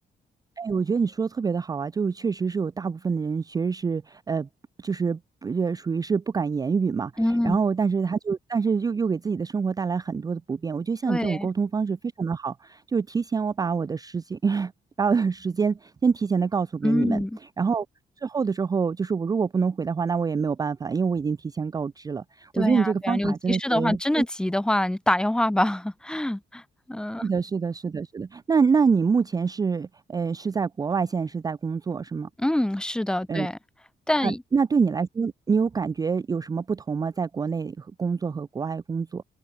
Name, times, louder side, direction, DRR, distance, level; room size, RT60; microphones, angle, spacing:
voice 1, 0.6-4.5 4.8-7.1 7.4-14.7 15.0-17.2 17.6-17.9 18.2-24.2 27.2-32.3 33.3-33.5 34.2-39.2, right 5 dB, 20° right, 0.4 m, -26 dB
voice 2, 7.2-7.6 11.1-11.5 16.8-17.4 22.5-26.6 26.9-27.3 32.4-33.6 34.1-34.4, left 1 dB, 5° left, 0.8 m, -25 dB
wide cardioid pair, 170°, 18 cm